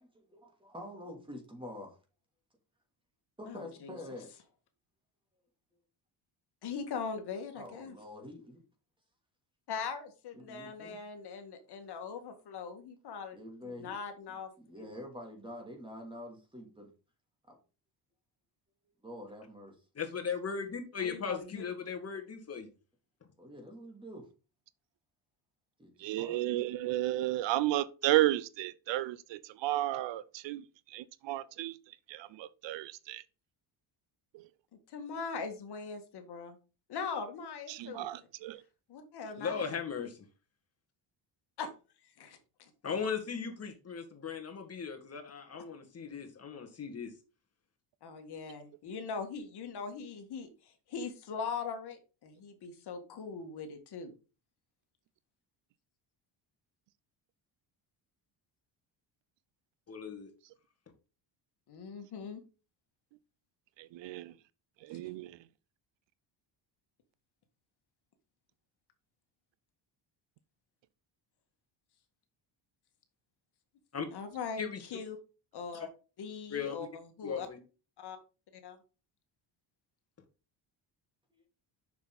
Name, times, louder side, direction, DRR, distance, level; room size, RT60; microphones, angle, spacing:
voice 1, 0.0-2.0 3.4-4.3 7.5-8.6 10.3-11.0 13.3-14.0 14.6-16.9 17.5-17.6 19.0-19.7 23.4-24.3 25.8-26.4 81.3-81.4, left 1 dB, 10° right, 2.8 m, -47 dB
voice 2, 3.5-4.0 6.6-8.0 9.7-14.5 14.8-14.9 21.0-21.6 34.9-36.6 36.9-38.1 38.9-39.6 41.6-41.7 42.0-42.7 48.0-54.1 61.7-62.4 74.1-75.2 75.5-75.9 76.2-77.5 78.0-78.2 78.5-78.8, left 5 dB, 60° left, 1.8 m, -41 dB
voice 3, 20.0-22.7 39.4-40.3 42.8-47.1 59.9-60.3 73.9-74.1 74.6-74.8 76.5-76.8 77.2-77.6, left 6 dB, 30° left, 1.8 m, -37 dB
voice 4, 26.0-31.8 32.1-33.2 34.3-34.5 37.7-38.6 63.8-64.3 64.8-65.4, right 15 dB, 70° right, 0.7 m, -33 dB
7.0 x 6.3 x 4.0 m
cardioid pair, 120°, 45 cm